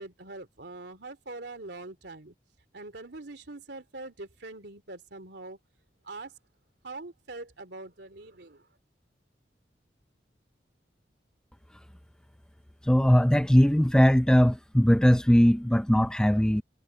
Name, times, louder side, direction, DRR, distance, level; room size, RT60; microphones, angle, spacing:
voice 1, 0.0-2.3 2.7-5.6 6.0-6.4 6.8-8.7, right 2 dB, 70° right, 2.9 m, -43 dB
voice 2, 12.8-16.6, equal, 5° left, 0.4 m, -20 dB
head